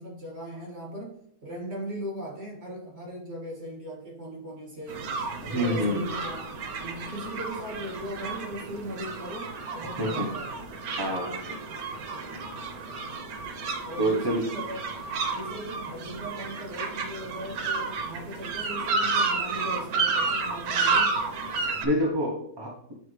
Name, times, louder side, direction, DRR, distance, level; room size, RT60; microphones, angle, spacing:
voice 1, 0.0-5.1 5.4-6.4 6.8-10.6 13.8-14.8 15.2-21.2, equal, 45° right, -3 dB, 2.2 m, -38 dB
sound 1, 4.9-21.9, right 4 dB, 90° right, 1.3 m, -31 dB
voice 2, 5.4-6.1 10.0-10.3 11.0-11.4 14.0-14.5 21.8-22.8, equal, 20° right, 0 dB, 0.8 m, -27 dB
8.0 x 4.0 x 3.2 m, 0.66 s
omnidirectional pair, 1.5 m